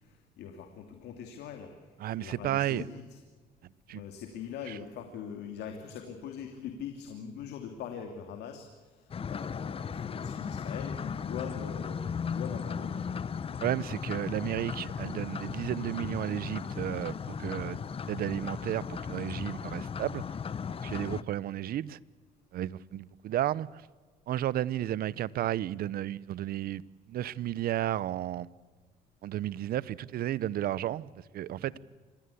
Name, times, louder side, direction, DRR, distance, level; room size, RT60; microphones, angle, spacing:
voice 1, 0.0-1.7 2.2-3.2 3.9-13.1, left 7 dB, 80° left, 2.8 m, -42 dB
voice 2, 2.0-2.8 3.9-4.0 4.7-4.8 13.6-17.8 18.1-20.2 20.8-22.0 22.5-23.8 24.3-26.8 27.1-28.5 29.2-31.8, right 12 dB, 60° right, 0.8 m, -33 dB
sound 1, 9.1-21.2, left 6 dB, 35° left, 0.9 m, -36 dB
26.0 x 19.5 x 8.5 m
cardioid pair, 110°, 17 cm